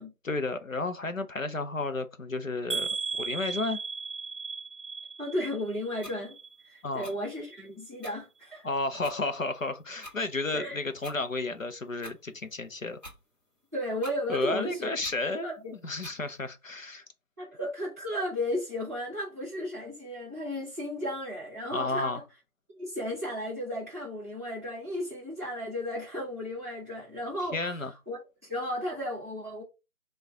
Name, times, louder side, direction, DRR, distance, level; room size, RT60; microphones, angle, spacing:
voice 1, 0.2-2.9 3.2-3.8 6.8-7.1 8.6-13.0 14.3-15.5 15.8-17.0 21.7-22.2 27.5-27.9, left 3 dB, 60° left, 0.6 m, -32 dB
sound 1, 2.7-6.7 7.0-7.6 8.1-8.2 8.5-8.6, right 4 dB, 55° right, 0.7 m, -36 dB
voice 2, 5.2-6.3 6.6-8.7 10.5-10.8 13.7-14.9 15.4-15.7 17.4-22.1 22.8-27.8 28.1-29.6, left 1 dB, 10° right, 1.0 m, -34 dB
sound 2, 6.0-6.2 7.0-7.1 8.0-8.1 9.0-9.2 10.0-10.2 11.0-11.2 12.0-12.2 13.0-13.2 14.0-14.2 15.0-15.2 16.0-16.2, equal, 30° left, 1.1 m, -45 dB
6.0 x 2.3 x 3.5 m
figure-of-eight pair, 155°, 46 cm